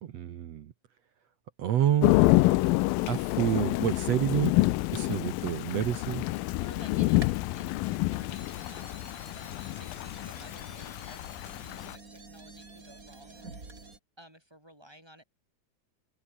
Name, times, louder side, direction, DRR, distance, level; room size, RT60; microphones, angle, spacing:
voice 1, 0.0-0.7 1.6-2.2 3.0-4.5 4.9-6.2, right 10 dB, 65° right, 1.7 m, -28 dB
Thunder / Rain, 2.0-11.9, left 20 dB, 80° left, 2.2 m, -27 dB
sound 1, 5.8-14.0, right 3 dB, 20° right, 3.7 m, -49 dB
voice 2, 6.6-11.3 11.8-13.8 14.2-15.2, right 1 dB, 5° right, 6.2 m, -54 dB
open air
omnidirectional pair, 4.5 m